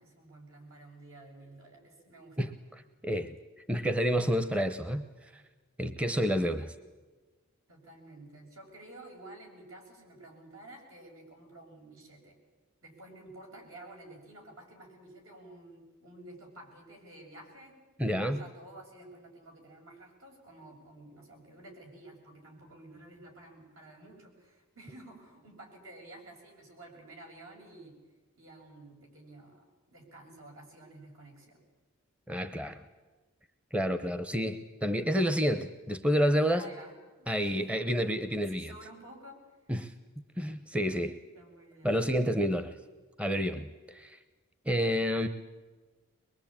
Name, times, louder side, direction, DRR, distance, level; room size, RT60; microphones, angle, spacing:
voice 1, 0.0-2.6 7.7-12.4 12.8-27.9 28.4-31.6 36.5-37.9 38.5-39.4 41.3-42.0, right 1 dB, 75° right, 1 dB, 7.1 m, -51 dB
voice 2, 2.4-3.4 3.7-5.1 5.3-5.4 5.8-6.7 18.0-18.4 32.3-32.8 33.7-36.7 37.3-38.7 39.7-39.9 40.4-41.2 41.8-42.7 43.2-44.2 44.7-45.3, equal, 5° right, 10 dB, 0.8 m, -29 dB
23.0 x 22.0 x 8.8 m, 1.3 s
head